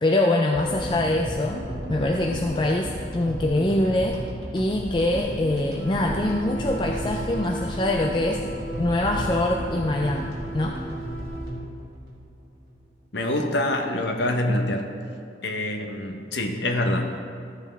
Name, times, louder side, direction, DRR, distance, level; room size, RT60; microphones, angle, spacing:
voice 1, 0.0-1.6 1.9-4.2 4.5-8.4 8.8-10.8, left 1 dB, 25° left, 1 dB, 0.4 m, -24 dB
sound 1, 0.5-12.9, right 1 dB, 65° right, 1.9 m, -35 dB
sound 2, 5.7-11.5, right 1 dB, 40° left, 2.4 m, -37 dB
voice 2, 13.1-14.9 15.4-17.2, left 1 dB, 80° left, 3 dB, 0.9 m, -25 dB
13.0 x 7.2 x 3.4 m, 2.3 s
head